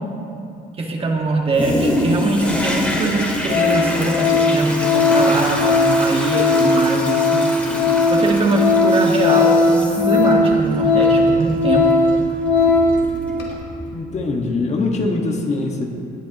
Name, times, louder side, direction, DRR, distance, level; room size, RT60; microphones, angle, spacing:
voice 1, 0.8-7.5 8.1-11.9, right 2 dB, 35° right, 0 dB, 1.7 m, -22 dB
Toilet flush, 1.5-14.0 14.5-14.6, left 1 dB, 10° left, 1.9 m, -26 dB
Organ, 2.4-2.5 3.0-3.2 3.5-13.1 13.4-13.5, left 3 dB, 80° left, 2.4 m, -17 dB
voice 2, 13.9-15.9, left 3 dB, 40° left, 1 dB, 1.5 m, -22 dB
18.0 x 10.5 x 2.9 m, 2.6 s
cardioid pair, 110°, 17 cm